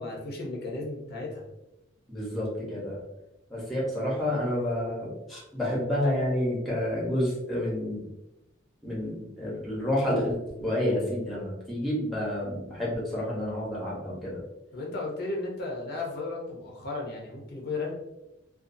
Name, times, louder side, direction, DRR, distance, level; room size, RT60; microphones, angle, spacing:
voice 1, 0.0-1.4 14.7-17.9, left 3 dB, 55° left, -1 dB, 0.6 m, -34 dB
voice 2, 2.1-3.0 3.5-8.1 8.8-14.4, left 1 dB, ahead, -6 dB, 0.8 m, -29 dB
2.5 x 2.3 x 2.5 m, 0.91 s
head